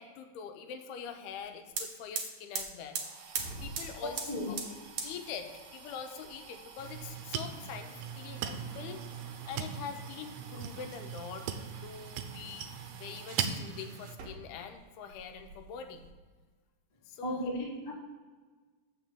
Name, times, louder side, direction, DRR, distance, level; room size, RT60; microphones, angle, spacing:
voice 1, 0.0-3.0 3.6-4.6 5.0-9.0 9.5-11.5 11.8-16.0 17.1-17.5, left 7 dB, 90° left, 6 dB, 2.7 m, -44 dB
sound 1, 1.4-1.5 1.7-13.6 14.1-14.8 15.1-16.1, right 5 dB, 65° right, 2.2 m, -44 dB
voice 2, 4.0-4.5 17.2-17.9, left 1 dB, 25° left, -2 dB, 1.2 m, -35 dB
sound 2, 6.8-14.2, right 8 dB, 80° right, 2.5 m, -39 dB
7.4 x 6.1 x 6.7 m, 1.4 s
omnidirectional pair, 4.4 m